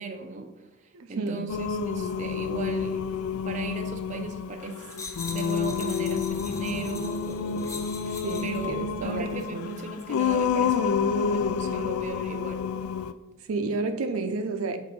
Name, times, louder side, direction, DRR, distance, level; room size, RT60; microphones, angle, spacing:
voice 1, 0.0-3.0 3.4-4.9 5.3-7.8 8.4-8.7 9.0-12.7, right 3 dB, 35° right, 0.6 m, -37 dB
voice 2, 0.9-1.5 8.1-9.8 13.5-14.8, right 3 dB, 90° right, 0.5 m, -31 dB
Singing, 1.5-13.1, left 6 dB, 90° left, 0.3 m, -29 dB
sound 1, 4.9-8.7 9.3-9.5, left 3 dB, 15° left, 0.4 m, -42 dB
7.7 x 2.6 x 5.1 m
head